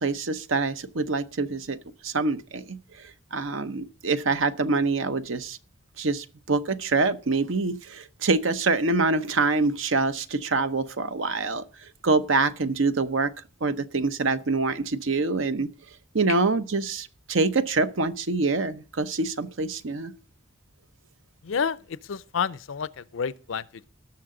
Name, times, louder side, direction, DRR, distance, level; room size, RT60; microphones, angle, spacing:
voice 1, 0.0-1.8 2.0-2.8 3.3-5.6 6.0-11.6 12.0-13.3 13.6-15.7 16.1-20.1, right 3 dB, 80° right, 0.8 m, -25 dB
voice 2, 21.4-23.9, left 6 dB, 80° left, 0.5 m, -30 dB
18.0 x 6.7 x 3.8 m
head